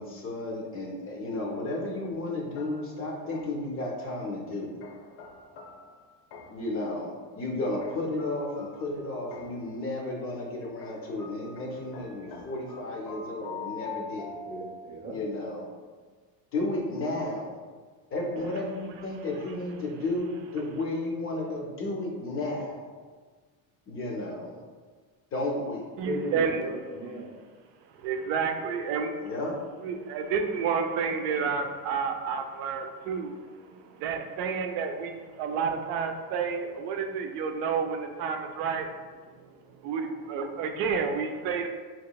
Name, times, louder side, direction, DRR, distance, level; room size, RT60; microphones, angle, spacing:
voice 1, 0.0-4.8 6.5-14.4 15.1-15.7 16.5-17.5 18.1-22.9 23.9-24.6 25.3-25.9 29.2-29.6, left 2 dB, 30° left, -1 dB, 0.4 m, -33 dB
sound 1, 2.6-3.8 4.8-6.8 7.8-9.8 10.8-15.1, left 4 dB, 85° left, 0.8 m, -44 dB
voice 2, 14.5-15.2 26.0-27.4, right 1 dB, 30° right, -1 dB, 0.6 m, -36 dB
voice 3, 26.0-26.6 28.0-29.1 29.8-33.3 33.6-38.9 39.8-41.7, right 6 dB, 80° right, 5 dB, 0.6 m, -30 dB
4.7 x 2.9 x 2.2 m, 1.5 s
cardioid pair, 160°, 44 cm